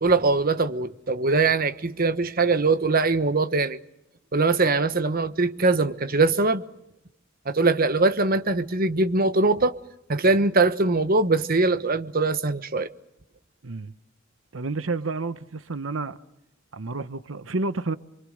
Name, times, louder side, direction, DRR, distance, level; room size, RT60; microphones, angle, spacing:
voice 1, 0.0-3.8 4.3-6.6 7.4-9.7 10.1-12.9, right 3 dB, 50° right, 1.2 m, -22 dB
voice 2, 13.6-13.9 14.5-16.2 16.7-18.0, right 3 dB, 85° right, 1.0 m, -30 dB
27.5 x 24.0 x 6.6 m
head